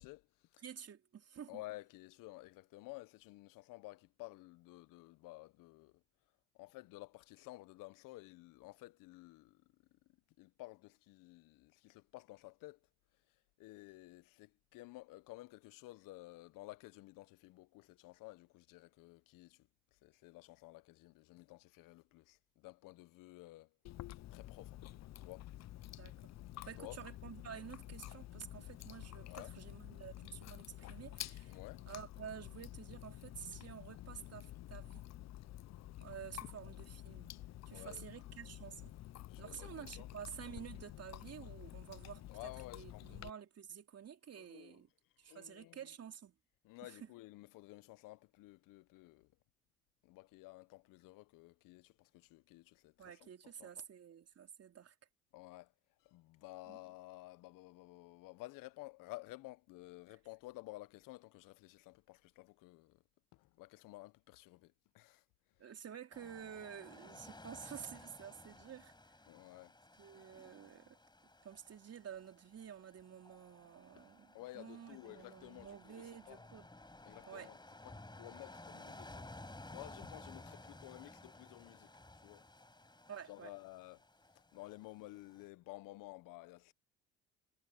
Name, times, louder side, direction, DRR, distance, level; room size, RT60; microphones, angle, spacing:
voice 1, 0.0-0.6 1.5-6.0 6.5-10.0 10.4-12.8 13.6-23.7 24.1-24.8 25.2-25.5 26.6-27.0 29.2-29.5 31.4-31.8 37.7-38.1 39.3-40.1 42.3-43.2 44.4-44.8 45.3-45.8 46.6-49.3 50.0-53.3 53.6-53.8 55.3-55.7 56.0-63.0 63.3-65.2 69.3-69.7 74.0-74.1 74.3-76.4 77.1-77.6 77.8-81.9 82.2-82.5 83.3-84.0 84.3-86.7, left 19 dB, 70° left, 1.4 m, -53 dB
voice 2, 0.6-1.6 26.0-26.3 26.7-31.6 31.9-35.0 36.0-37.3 37.7-38.9 39.4-42.2 42.7-44.9 45.2-46.3 46.8-47.1 53.0-54.9 56.7-56.8 65.6-68.9 70.0-71.0 71.4-76.7 77.3-77.5 83.1-83.5, right 8 dB, 45° right, 3.5 m, -50 dB
Chewing mastication, 23.8-43.3, left 14 dB, 50° left, 0.8 m, -50 dB
sound 1, 66.1-85.5, left 2 dB, 15° left, 6.1 m, -56 dB
hypercardioid pair, 60°, 34 cm